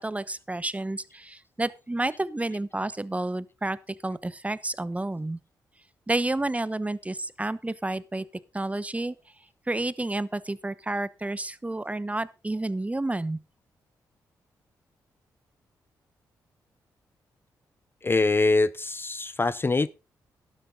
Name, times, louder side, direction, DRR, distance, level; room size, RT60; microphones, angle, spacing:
voice 1, 0.0-3.8 4.0-5.4 6.1-8.2 8.5-9.1 9.7-13.4, right 2 dB, 15° right, 1.0 m, -30 dB
voice 2, 18.0-19.9, left 3 dB, 30° left, 0.6 m, -23 dB
12.0 x 11.0 x 3.9 m
supercardioid pair, 50°, 8 cm